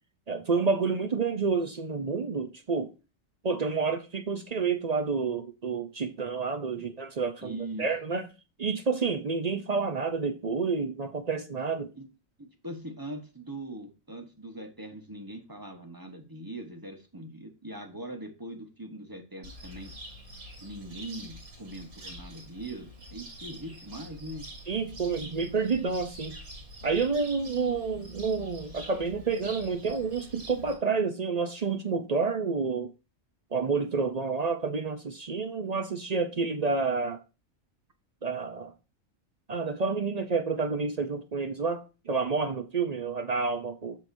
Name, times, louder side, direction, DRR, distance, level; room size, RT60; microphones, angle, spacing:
voice 1, 0.3-2.9 3.4-8.2 8.6-11.9 24.7-26.4 26.8-32.9 33.5-37.2 38.2-38.7 39.5-44.0, right 4 dB, 45° right, 0.5 m, -29 dB
voice 2, 7.4-7.9 11.9-12.1 12.4-19.9 20.6-24.5, right 1 dB, 15° right, 1.0 m, -41 dB
Cricket, 19.4-30.7, right 1 dB, 80° right, 3.1 m, -46 dB
7.7 x 6.4 x 2.6 m
omnidirectional pair, 1.5 m